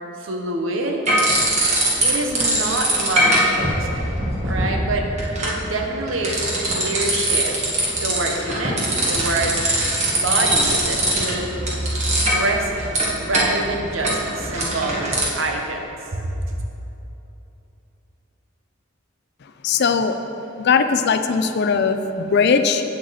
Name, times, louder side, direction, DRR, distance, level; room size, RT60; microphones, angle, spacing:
voice 1, 0.2-1.0 2.0-4.2 4.4-5.1 5.4-7.6 8.0-11.5 12.3-16.3 16.6-16.7, right 2 dB, 70° right, 2 dB, 1.0 m, -26 dB
sound 1, 1.0-2.1 2.3-15.2, right 1 dB, 35° right, 1.6 m, -22 dB
voice 2, 19.6-20.2 20.6-22.8, left 5 dB, 55° left, 9 dB, 0.4 m, -19 dB
8.4 x 7.5 x 4.1 m, 3.0 s
head